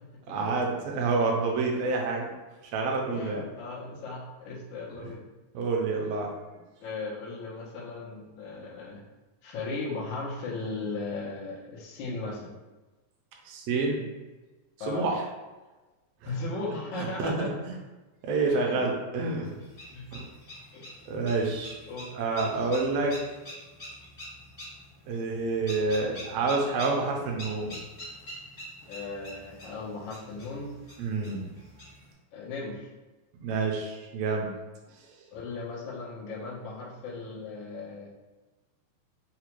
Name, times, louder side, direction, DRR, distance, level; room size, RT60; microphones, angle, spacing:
voice 1, 0.3-2.3 2.7-3.4 5.0-5.1 5.5-6.3 13.4-14.1 14.9-15.2 16.2-16.3 16.9-17.7 18.2-19.5 20.1-20.3 21.1-21.8 22.1-23.2 25.1-27.7 31.0-31.4 33.4-34.5, right 3 dB, 75° right, 0 dB, 1.6 m, -28 dB
voice 2, 3.1-5.2 6.8-9.0 9.4-12.5 14.8-15.1 16.3-17.5 18.5-18.9 19.9-20.2 20.7-21.0 21.9-22.1 28.9-30.8 32.3-32.9 35.3-38.1, left 3 dB, 85° left, -5 dB, 1.1 m, -37 dB
sound 1, 19.4-32.1, equal, 40° left, 0.8 m, -45 dB
4.8 x 2.2 x 2.9 m, 1.2 s
omnidirectional pair, 3.4 m